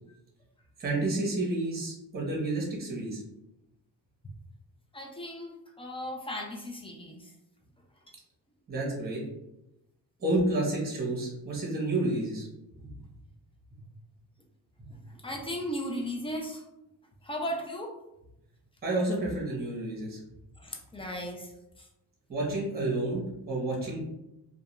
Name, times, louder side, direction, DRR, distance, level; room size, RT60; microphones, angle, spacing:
voice 1, 0.8-3.2 8.7-9.2 10.2-12.5 12.8-12.9 14.8-14.9 18.8-20.2 22.3-24.0, right 2 dB, 25° right, -3 dB, 0.8 m, -30 dB
voice 2, 4.9-7.3 15.2-16.6 17.2-17.9 20.6-21.5 21.8-21.9, equal, 15° left, 1 dB, 0.3 m, -36 dB
2.2 x 2.2 x 2.9 m, 0.89 s
cardioid pair, 110°, 41 cm